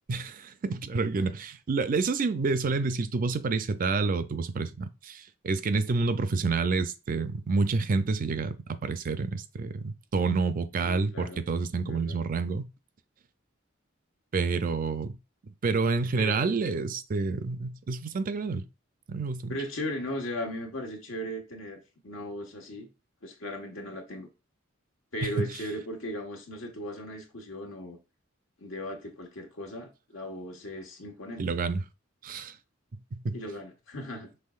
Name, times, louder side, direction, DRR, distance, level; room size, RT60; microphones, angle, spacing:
voice 1, 0.1-12.7 14.3-15.2 15.4-18.6 19.1-19.5 25.2-25.5 31.4-31.8 32.2-32.5 33.1-33.4, right 4 dB, 45° right, 0.4 m, -28 dB
voice 2, 10.8-11.4 11.8-12.2 16.2-16.5 19.5-22.9 23.2-24.3 25.1-28.0 28.6-31.5 33.3-34.3, equal, 80° left, 1.4 m, -37 dB
5.6 x 3.4 x 2.4 m
head